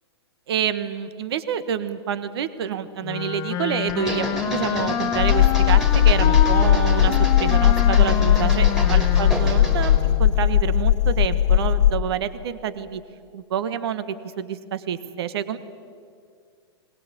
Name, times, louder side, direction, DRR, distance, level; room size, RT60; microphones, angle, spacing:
voice 1, 0.5-13.0 13.3-15.6, right 9 dB, 65° right, 12 dB, 1.4 m, -28 dB
Wind instrument woodwind instrument, 3.0-10.4, left 8 dB, 25° left, 1.2 m, -28 dB
sound 1, 3.9-10.0, right 1 dB, 5° right, 3.1 m, -32 dB
sound 2, 5.2-12.0, left 11 dB, 85° left, 0.6 m, -18 dB
21.5 x 19.5 x 8.4 m, 2.2 s
hypercardioid pair, 135°, 14 cm